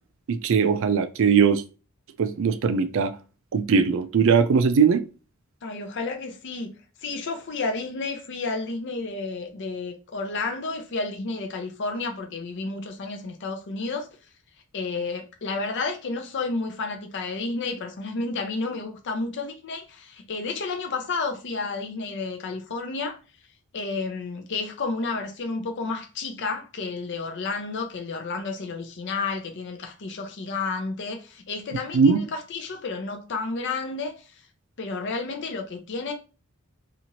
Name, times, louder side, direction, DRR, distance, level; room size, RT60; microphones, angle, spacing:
voice 1, 0.3-1.6 2.2-3.2 3.5-5.0 31.9-32.2, right 6 dB, 60° right, 0.4 m, -20 dB
voice 2, 5.6-6.7 7.0-14.1 14.7-23.2 23.7-34.2 34.8-36.1, left 3 dB, 55° left, 0.5 m, -31 dB
2.8 x 2.5 x 2.8 m
head